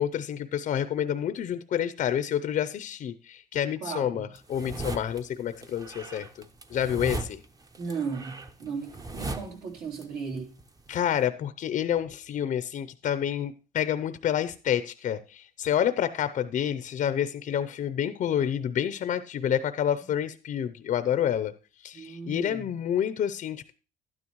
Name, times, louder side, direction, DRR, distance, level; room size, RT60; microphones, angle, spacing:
voice 1, 0.0-6.5 6.7-7.4 10.9-21.5 21.8-23.7, left 9 dB, 50° left, 0.6 m, -28 dB
voice 2, 3.8-4.3 7.8-10.5 21.9-22.7, right 5 dB, 70° right, 3.5 m, -36 dB
sound 1, 4.4-5.2 5.6-10.0 10.3-11.2, right 2 dB, 20° right, 0.8 m, -38 dB
12.0 x 9.8 x 3.0 m
cardioid pair, 110°, 17 cm